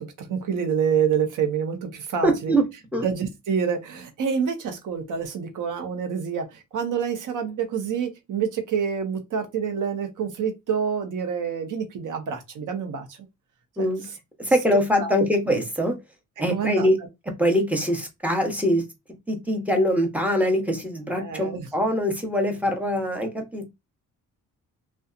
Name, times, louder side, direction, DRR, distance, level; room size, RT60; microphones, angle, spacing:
voice 1, 0.0-2.5 3.0-13.2 13.8-14.1 15.0-15.3 16.5-16.9 21.1-21.7, right 7 dB, 65° right, 0.9 m, -27 dB
voice 2, 2.2-2.6 2.9-3.0 13.8-14.0 14.4-16.0 16.4-17.0 17.3-18.8 19.3-23.7, equal, 5° right, 0.7 m, -23 dB
2.6 x 2.3 x 2.3 m
cardioid pair, 110°, 34 cm